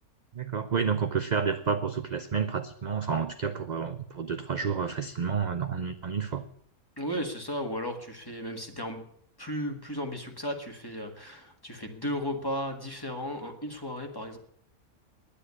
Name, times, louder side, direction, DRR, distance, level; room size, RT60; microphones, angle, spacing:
voice 1, 0.3-6.4, right 6 dB, 50° right, 8 dB, 0.5 m, -30 dB
voice 2, 7.0-9.1 9.4-14.4, equal, 15° left, 4 dB, 1.8 m, -35 dB
10.0 x 10.0 x 9.6 m, 0.66 s
omnidirectional pair, 1.5 m